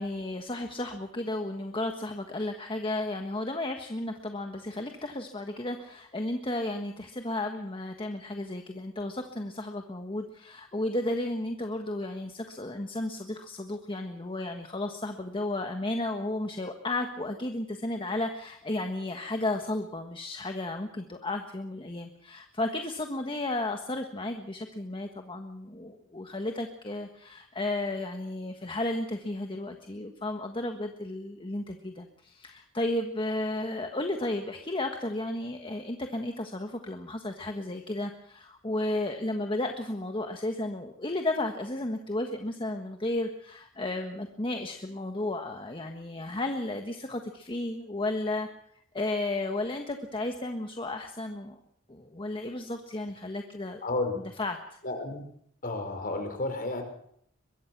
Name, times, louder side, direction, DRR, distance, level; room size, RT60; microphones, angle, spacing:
voice 1, 0.0-48.5 48.9-51.6 51.9-53.8 54.4-54.8, left 2 dB, 25° left, 4 dB, 1.5 m, -33 dB
voice 2, 53.8-54.2 54.8-55.2 55.6-56.8, left 2 dB, 45° left, 6 dB, 5.2 m, -31 dB
23.0 x 22.5 x 6.1 m, 0.68 s
head